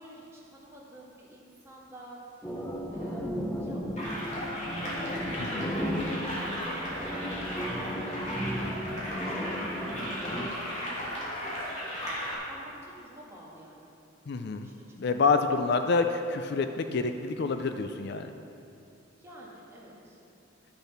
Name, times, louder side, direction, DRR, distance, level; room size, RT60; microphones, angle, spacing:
voice 1, 0.0-3.3 3.6-4.8 6.0-8.1 9.1-11.7 12.5-14.0 14.6-14.8 19.1-20.4, right 1 dB, 15° right, -6 dB, 2.0 m, -50 dB
sound 1, 2.4-10.5, equal, 10° left, 0.7 m, -35 dB
sound 2, 4.0-12.3, equal, 35° left, 2.8 m, -36 dB
voice 2, 5.4-5.8 9.8-9.9 14.3-14.7 15.0-18.3, left 4 dB, 55° left, 8 dB, 0.4 m, -28 dB
12.0 x 7.1 x 5.6 m, 2.7 s
head